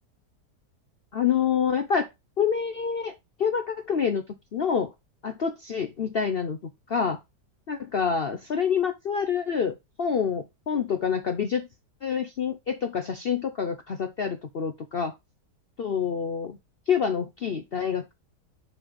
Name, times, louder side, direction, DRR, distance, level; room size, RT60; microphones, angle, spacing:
voice 1, 1.1-2.1 2.4-4.2 4.5-4.9 5.2-7.2 7.7-9.7 10.0-11.7 12.0-15.1 15.8-16.6 16.9-18.1, left 7 dB, 70° left, 8 dB, 0.5 m, -27 dB
5.6 x 5.2 x 5.1 m, 0.22 s
omnidirectional pair, 1.9 m